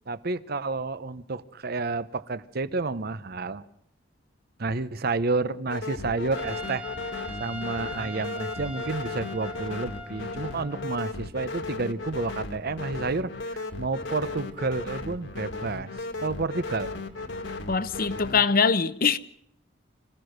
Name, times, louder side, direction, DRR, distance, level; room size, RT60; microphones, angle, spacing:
voice 1, 0.1-3.7 4.6-6.8 7.4-15.9 16.2-16.9, right 3 dB, 55° right, 0.8 m, -30 dB
sound 1, 5.7-18.4, left 2 dB, 70° left, 2.0 m, -36 dB
Trumpet, 6.3-10.9, left 1 dB, 10° right, 2.0 m, -40 dB
voice 2, 17.7-19.2, left 5 dB, 50° left, 0.8 m, -23 dB
26.5 x 15.5 x 6.6 m
head